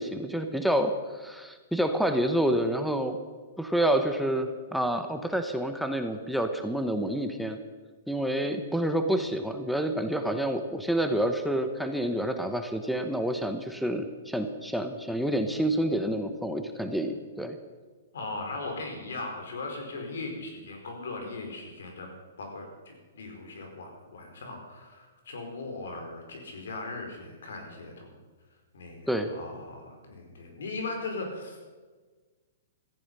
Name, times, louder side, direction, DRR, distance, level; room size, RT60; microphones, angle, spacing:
voice 1, 0.0-3.2 3.6-7.6 8.1-17.6 29.1-29.3, right 1 dB, ahead, 6 dB, 1.0 m, -28 dB
voice 2, 18.1-22.1 22.4-28.2 28.7-31.6, left 3 dB, 85° left, 3 dB, 4.8 m, -38 dB
16.5 x 14.0 x 5.6 m, 1.4 s
hypercardioid pair, 145°, 0 cm